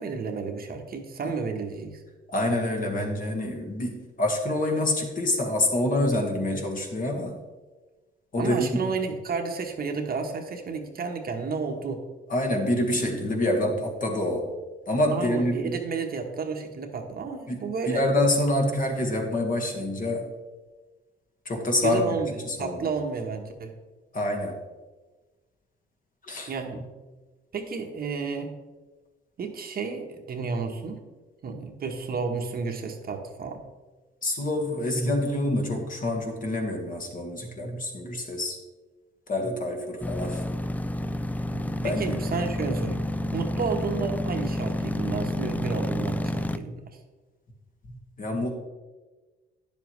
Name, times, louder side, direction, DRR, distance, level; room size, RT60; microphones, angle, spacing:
voice 1, 0.0-2.0 8.4-12.0 15.1-18.0 21.8-23.7 26.5-26.9 27.5-28.6 29.4-31.0 31.4-33.6 41.5-46.9, right 5 dB, 50° right, 4 dB, 1.1 m, -32 dB
voice 2, 2.3-7.4 8.3-8.9 12.3-14.5 14.9-15.8 17.5-20.3 21.4-22.9 24.1-24.6 26.2-26.5 34.2-38.6 39.3-40.4 41.8-42.2 47.9-48.5, left 1 dB, 45° left, 2 dB, 1.7 m, -27 dB
sound 1, 40.0-46.6, left 1 dB, 10° left, 0.3 m, -29 dB
9.9 x 7.2 x 3.2 m, 1.3 s
cardioid pair, 90°, 20 cm